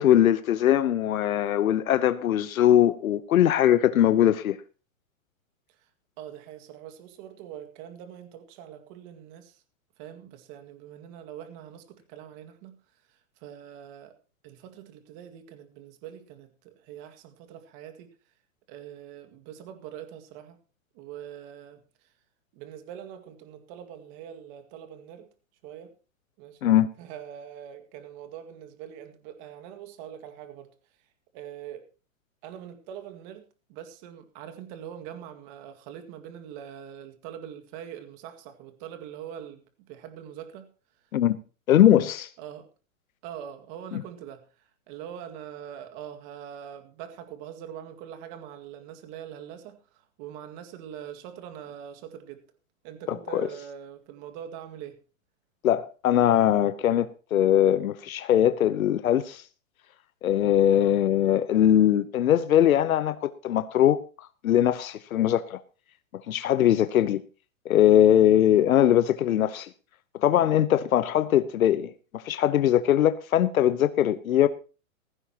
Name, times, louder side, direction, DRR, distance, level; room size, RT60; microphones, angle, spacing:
voice 1, 0.0-4.6 26.6-26.9 41.1-41.4 41.7-42.3 53.1-53.5 55.6-59.4 60.2-65.6 66.3-67.2 67.6-69.7 70.2-74.5, left 11 dB, 85° left, 1.0 m, -21 dB
voice 2, 6.2-9.6 10.0-12.8 13.1-14.2 14.4-18.1 18.7-20.6 20.9-22.1 22.5-25.3 25.6-25.9 26.4-26.7 27.0-30.7 31.3-31.9 32.4-33.4 33.7-40.7 42.4-42.7 43.2-52.4 52.8-55.0 60.7-61.0, right 9 dB, 35° right, 2.1 m, -43 dB
16.0 x 15.5 x 2.9 m
hypercardioid pair, 155°, 41 cm